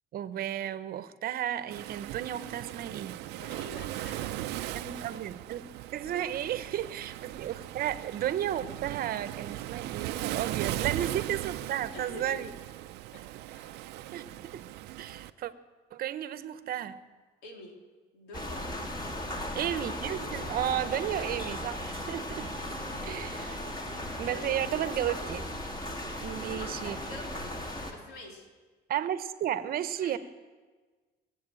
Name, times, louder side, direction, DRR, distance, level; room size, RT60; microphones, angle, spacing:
voice 1, 0.1-3.2 4.7-5.7 5.9-12.5 14.1-14.7 15.0-15.5 15.9-17.0 19.5-22.5 23.0-23.6 24.2-25.5 26.2-27.0 28.9-30.2, right 11 dB, 60° right, 0.9 m, -33 dB
Waves surf, 1.7-15.3, right 15 dB, 90° right, 0.6 m, -38 dB
voice 2, 3.4-4.8 6.0-6.6 7.4-7.6 10.4-10.8 11.9-12.4 13.1-13.8 17.4-17.8 18.1-19.0 21.2-21.5 22.6-22.7 24.2-24.8 26.5-28.5 30.0-30.2, left 2 dB, 80° left, 3.7 m, -48 dB
sound 1, 18.3-27.9, left 1 dB, 25° left, 2.4 m, -37 dB
21.5 x 8.3 x 7.7 m
cardioid pair, 110°, 17 cm